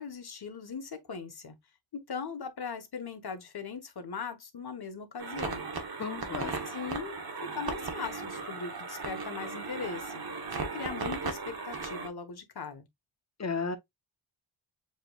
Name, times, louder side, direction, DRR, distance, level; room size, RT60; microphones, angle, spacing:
voice 1, 0.0-1.5 1.9-5.6 6.4-10.2 10.6-12.9, left 5 dB, 50° left, 1.4 m, -39 dB
sound 1, 5.2-12.1, right 4 dB, 50° right, 1.2 m, -37 dB
voice 2, 6.0-6.5 13.4-13.8, left 5 dB, 35° left, 1.1 m, -33 dB
7.2 x 3.0 x 2.4 m
cardioid pair, 80°, 47 cm